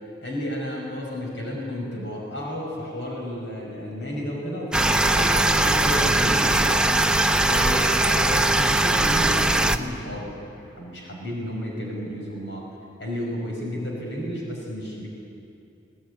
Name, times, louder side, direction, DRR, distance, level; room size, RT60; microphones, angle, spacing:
voice 1, 0.2-6.9 7.4-12.7 13.0-15.1, equal, 80° left, -1 dB, 5.7 m, -32 dB
sound 1, 4.7-9.8, right 2 dB, 5° right, 0.6 m, -20 dB
21.5 x 19.5 x 9.7 m, 2.7 s
head